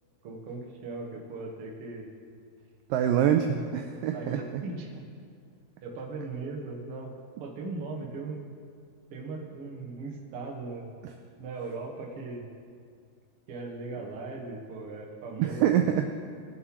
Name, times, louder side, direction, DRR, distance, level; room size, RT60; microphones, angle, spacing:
voice 1, 0.2-2.1 4.1-5.0 5.8-7.2 7.4-8.5 9.1-10.9 11.4-12.5 13.5-15.9, right 3 dB, 55° right, -1 dB, 1.6 m, -38 dB
voice 2, 2.9-4.6 15.4-16.1, right 10 dB, 80° right, 5 dB, 2.0 m, -25 dB
19.0 x 7.5 x 3.1 m, 2.2 s
omnidirectional pair, 4.3 m